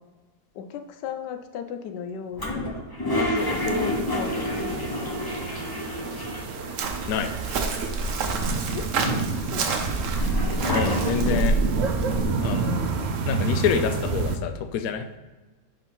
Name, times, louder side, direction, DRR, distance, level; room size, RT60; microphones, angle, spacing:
voice 1, 0.5-2.7 3.2-5.2 8.7-8.9 9.5-9.8 11.3-11.4, left 7 dB, 85° left, 6 dB, 1.3 m, -35 dB
Toilet flush, 2.4-6.7 7.0-7.1 7.3-8.1 8.7-11.5, left 1 dB, 30° left, 0.4 m, -30 dB
sound 1, 3.3-14.4, right 5 dB, 75° right, 0.6 m, -30 dB
Chirp tweet, 6.8-12.2, right 3 dB, 60° right, 1.0 m, -27 dB
voice 2, 10.7-11.5 12.4-15.2, left 7 dB, 70° left, 8 dB, 1.0 m, -27 dB
5.3 x 4.3 x 5.4 m, 1.2 s
omnidirectional pair, 1.8 m